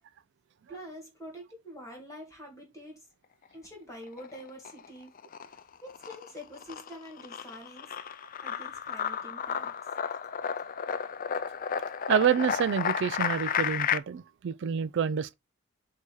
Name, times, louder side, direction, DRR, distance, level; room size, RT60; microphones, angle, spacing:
voice 1, 0.7-3.0 3.5-5.1 5.8-7.9 8.4-9.7, equal, 15° left, 2.3 m, -46 dB
sound 1, 4.0-4.9 5.2-14.0, left 8 dB, 40° left, 0.4 m, -32 dB
voice 2, 12.1-15.3, right 7 dB, 60° right, 0.4 m, -27 dB
8.2 x 2.9 x 4.6 m
head